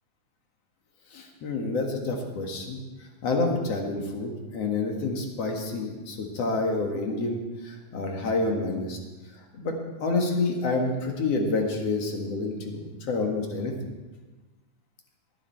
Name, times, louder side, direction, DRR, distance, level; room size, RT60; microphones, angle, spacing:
voice 1, 1.1-9.0 9.3-13.7, left 3 dB, 50° left, 2 dB, 2.5 m, -28 dB
19.5 x 10.0 x 4.5 m, 1.2 s
omnidirectional pair, 4.0 m